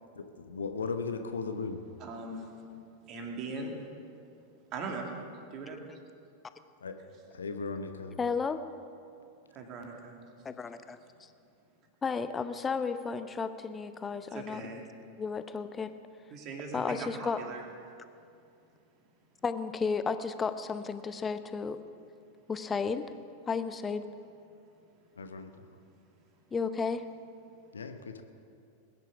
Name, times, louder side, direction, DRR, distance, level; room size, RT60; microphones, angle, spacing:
voice 1, 0.1-1.8 6.8-7.0 7.3-8.2 25.2-25.7 27.7-28.2, left 4 dB, 70° left, 8 dB, 1.0 m, -37 dB
voice 2, 2.0-2.7 3.1-3.8 4.1-4.2 4.7-5.9 9.5-10.5 14.3-14.8 16.3-17.6, right 3 dB, 35° right, 1 dB, 2.5 m, -40 dB
voice 3, 8.2-8.6 10.4-11.3 12.0-14.6 15.2-15.9 16.7-17.4 19.4-21.8 22.5-23.0 23.5-24.0 26.5-27.0, left 5 dB, 15° left, 11 dB, 0.8 m, -33 dB
20.5 x 10.5 x 6.1 m, 2.5 s
figure-of-eight pair, 90°, 0 cm